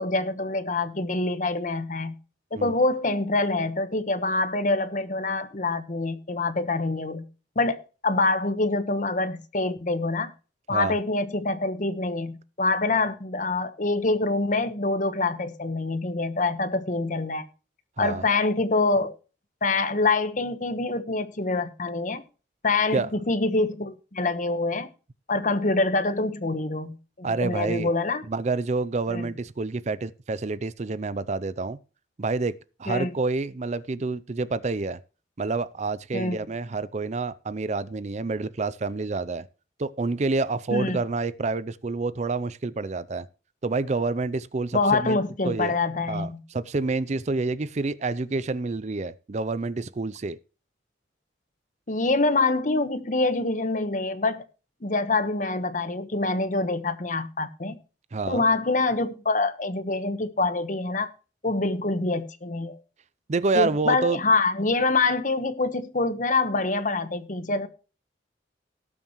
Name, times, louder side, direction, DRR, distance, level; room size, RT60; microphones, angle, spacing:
voice 1, 0.0-2.1 2.5-7.2 7.5-10.3 10.7-17.5 18.0-19.1 19.6-22.2 22.6-24.9 25.3-28.2 29.1-29.3 32.9-33.1 36.1-36.4 40.7-41.0 44.7-46.4 51.9-54.4 54.8-57.8 58.3-61.1 61.4-62.8 63.5-67.7, left 3 dB, 45° left, 1.1 m, -25 dB
voice 2, 27.2-27.9 28.3-31.8 32.2-35.0 35.4-39.4 39.8-43.3 43.6-45.2 45.4-45.7 46.1-50.4 58.1-58.4 63.3-64.2, right 3 dB, 40° right, 0.5 m, -28 dB
18.5 x 7.2 x 3.0 m
head